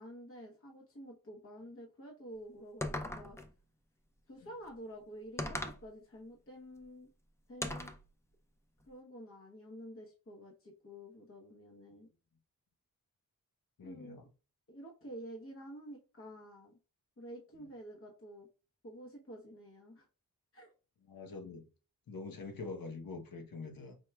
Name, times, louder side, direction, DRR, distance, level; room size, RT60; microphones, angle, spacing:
voice 1, 0.0-3.4 4.3-7.1 7.5-7.9 8.9-12.1 13.8-14.2 14.7-16.8 17.2-18.5 18.8-20.1 20.5-20.7, equal, 40° left, 0.9 m, -50 dB
sound 1, 2.8-3.5 5.4-5.9 7.6-8.0, left 1 dB, 10° left, 0.4 m, -38 dB
voice 2, 13.8-14.3 21.1-21.7 22.1-24.0, left 3 dB, 90° left, 1.0 m, -45 dB
4.5 x 4.4 x 2.3 m
wide cardioid pair, 135°, 34 cm